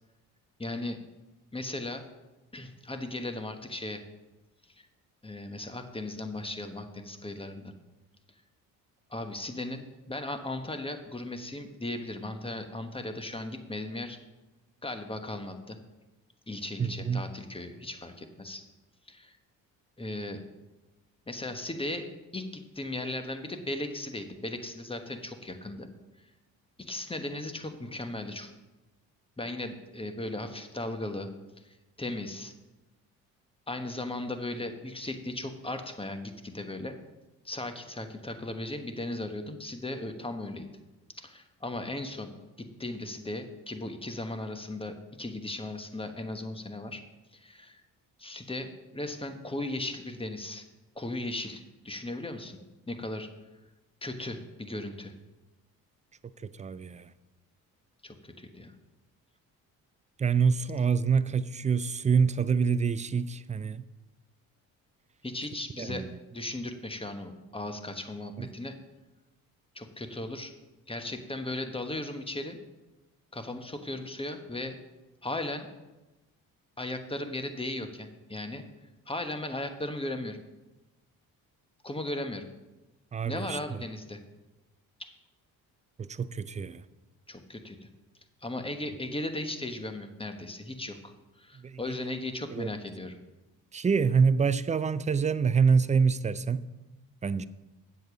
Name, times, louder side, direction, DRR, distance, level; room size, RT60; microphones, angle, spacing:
voice 1, 0.6-1.0 1.5-2.0 2.5-4.0 4.8-4.9 5.2-7.7 9.1-14.2 14.8-15.8 16.5-18.6 19.1-19.3 20.0-20.4 21.3-25.9 26.8-28.5 29.4-31.3 31.6-32.5 33.7-36.9 37.4-40.7 41.2-42.3 42.6-47.0 47.3-47.8 48.2-50.6 50.9-52.6 52.9-53.3 54.0-55.1 58.0-58.7 65.2-66.1 66.3-68.7 69.7-70.5 70.9-72.6 73.3-74.8 75.2-75.7 76.8-78.6 79.1-80.4 81.8-82.4 83.2-84.2 87.3-87.9 88.4-91.1 91.4-93.2, left 1 dB, 15° left, 1.3 m, -37 dB
voice 2, 16.8-17.3 56.4-57.1 60.2-63.9 65.8-66.2 68.4-68.5 83.1-83.8 86.0-86.8 91.6-91.8 92.5-92.7 93.7-96.6 97.2-97.5, right 5 dB, 20° right, 0.4 m, -26 dB
7.8 x 7.1 x 6.3 m
hypercardioid pair, 60°, 42 cm